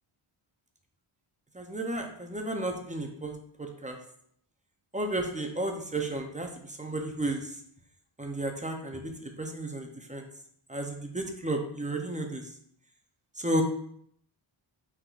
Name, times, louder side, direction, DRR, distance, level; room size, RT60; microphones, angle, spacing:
voice 1, 1.5-4.0 4.9-6.5 6.8-7.5 8.2-10.3 10.7-12.4 13.4-13.6, right 1 dB, 15° right, 3 dB, 0.5 m, -33 dB
5.8 x 3.5 x 2.4 m, 0.66 s
wide cardioid pair, 135°, 50 cm